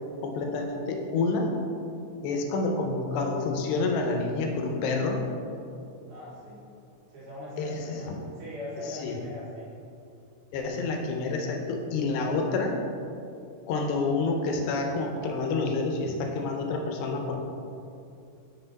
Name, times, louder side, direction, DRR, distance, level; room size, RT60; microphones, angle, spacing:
voice 1, 0.2-1.5 2.2-5.2 7.6-8.2 8.9-9.2 10.5-12.7 13.7-17.4, left 3 dB, 85° left, 2 dB, 2.5 m, -28 dB
voice 2, 6.1-6.7 7.1-8.1 8.4-9.7, left 1 dB, 65° right, -8 dB, 2.6 m, -40 dB
5.9 x 4.2 x 3.9 m, 2.6 s
omnidirectional pair, 4.2 m